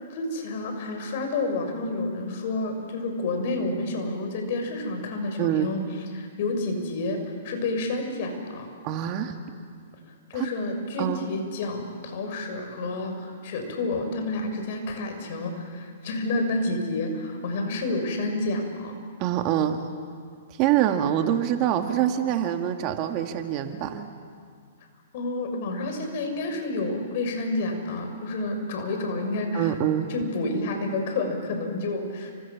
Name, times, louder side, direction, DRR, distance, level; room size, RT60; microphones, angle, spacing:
voice 1, 0.1-5.8 6.1-8.7 10.3-18.9 25.1-29.7 30.1-32.3, left 2 dB, 55° left, 5 dB, 6.4 m, -29 dB
voice 2, 5.4-5.7 8.8-9.3 10.3-10.5 11.0-11.3 19.2-19.8 20.6-24.1 29.5-30.1, right 11 dB, 35° right, 5 dB, 2.1 m, -25 dB
30.0 x 27.0 x 7.4 m, 2.1 s
hypercardioid pair, 135°, 0 cm